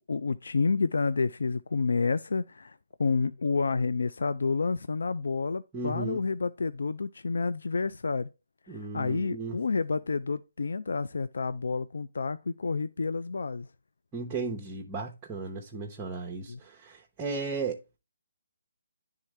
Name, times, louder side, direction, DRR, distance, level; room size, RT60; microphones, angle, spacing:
voice 1, 0.1-8.3 8.7-13.7 16.5-16.6, left 4 dB, 75° left, 0.3 m, -29 dB
voice 2, 5.7-6.2 8.7-9.6 14.1-18.0, right 4 dB, 15° right, 0.7 m, -35 dB
9.9 x 3.6 x 3.2 m
hypercardioid pair, 155°, 0 cm